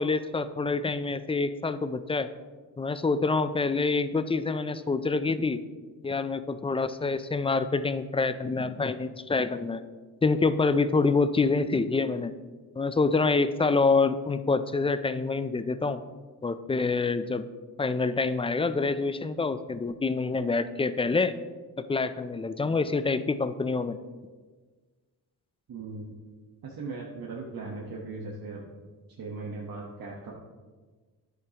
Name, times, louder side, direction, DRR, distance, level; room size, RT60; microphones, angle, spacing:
voice 1, 0.0-2.3 2.8-5.6 6.0-9.8 10.2-12.3 12.8-16.0 16.4-17.5 17.8-21.3 21.9-24.0, left 4 dB, 15° left, 12 dB, 0.3 m, -26 dB
voice 2, 25.7-26.2 26.6-28.7 29.2-30.3, right 3 dB, 60° right, -2 dB, 1.2 m, -38 dB
10.0 x 8.3 x 2.9 m, 1.4 s
cardioid pair, 90°, 40 cm